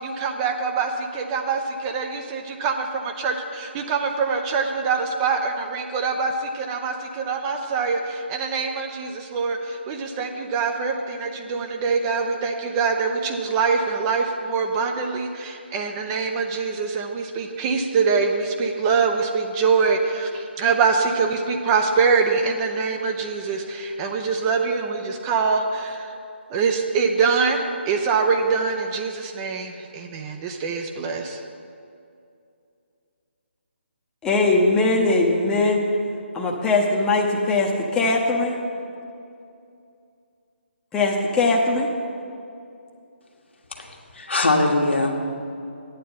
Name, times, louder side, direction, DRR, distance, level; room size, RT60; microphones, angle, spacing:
voice 1, 0.0-26.1 26.5-31.4, right 5 dB, 20° right, 4 dB, 0.6 m, -24 dB
voice 2, 34.2-35.8 36.3-38.5 40.9-41.9, left 2 dB, 10° left, -1 dB, 0.8 m, -20 dB
voice 3, 44.1-45.1, left 2 dB, 75° left, 1 dB, 1.5 m, -21 dB
10.0 x 8.9 x 5.6 m, 2.5 s
figure-of-eight pair, 145°, 6 cm